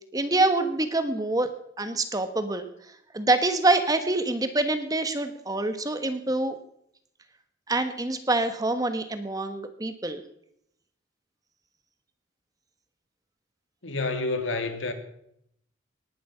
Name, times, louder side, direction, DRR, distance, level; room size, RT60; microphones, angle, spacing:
voice 1, 0.1-1.5 1.8-2.7 3.1-6.5 7.7-10.2, right 2 dB, 20° right, 1.3 m, -25 dB
voice 2, 13.8-14.9, left 3 dB, 85° left, 2.3 m, -28 dB
19.0 x 11.0 x 5.7 m
head